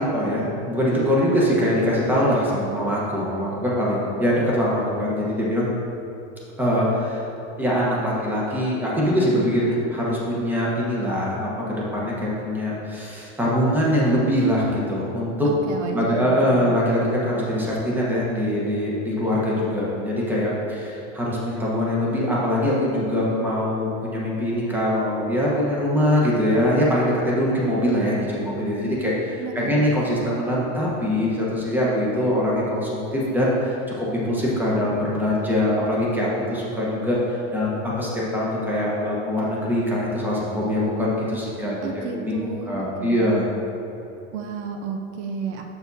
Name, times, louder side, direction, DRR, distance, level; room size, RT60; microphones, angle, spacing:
voice 1, 0.0-5.7 6.6-7.2 7.6-15.5 15.9-41.8 42.1-43.4, equal, 5° right, -6 dB, 1.1 m, -23 dB
voice 2, 15.4-16.7 29.4-29.8 41.8-43.4 44.3-45.7, right 5 dB, 70° right, 3 dB, 0.7 m, -32 dB
7.0 x 6.9 x 2.7 m, 2.9 s
supercardioid pair, 155°, 35 cm